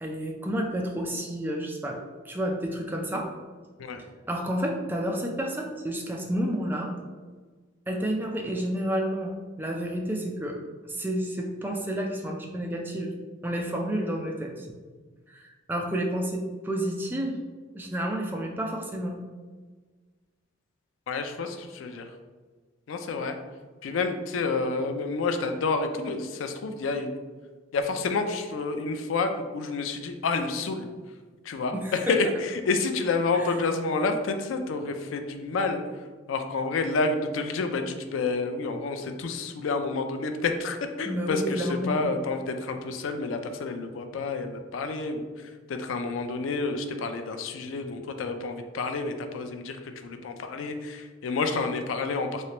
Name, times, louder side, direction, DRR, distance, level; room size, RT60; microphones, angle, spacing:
voice 1, 0.0-2.0 2.2-3.3 4.3-6.9 7.9-10.6 10.8-13.1 13.4-14.8 15.3-17.4 17.7-19.2 31.7-31.9 33.4-33.5 41.0-42.0, right 1 dB, 10° right, 1 dB, 0.4 m, -30 dB
voice 2, 21.1-22.0 22.9-23.3 23.8-27.1 27.7-30.9 31.4-52.5, left 3 dB, 85° left, 6 dB, 0.4 m, -29 dB
3.2 x 3.2 x 2.9 m, 1.4 s
head